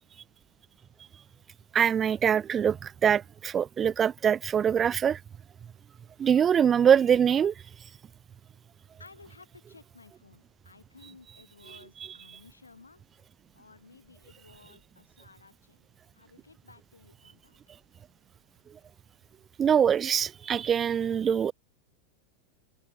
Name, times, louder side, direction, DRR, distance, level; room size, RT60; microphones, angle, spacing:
voice 1, 1.7-5.2 6.2-7.5 19.6-21.5, right 8 dB, 25° right, 0.7 m, -23 dB
voice 2, 9.0-13.0 13.5-15.8 16.1-17.6, left 4 dB, 85° left, 7.8 m, -55 dB
open air
figure-of-eight pair, 90°, 0 cm